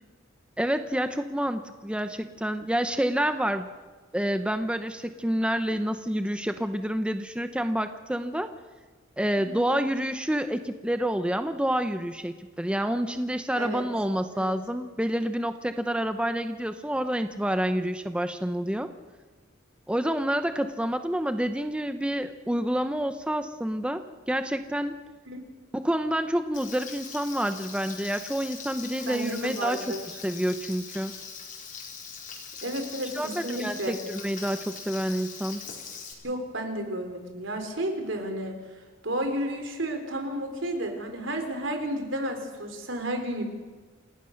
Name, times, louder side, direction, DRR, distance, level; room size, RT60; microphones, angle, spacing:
voice 1, 0.6-3.7 4.1-8.5 9.2-18.9 19.9-24.0 24.3-25.0 25.7-29.9 30.2-31.1 33.1-35.6, equal, 5° right, 8 dB, 0.7 m, -28 dB
Frying (food), 26.5-36.1, left 6 dB, 40° left, 4.8 m, -42 dB
voice 2, 29.1-30.1 32.6-34.0 36.2-43.4, right 1 dB, 70° right, 6 dB, 3.9 m, -32 dB
28.5 x 17.5 x 6.5 m, 1.4 s
head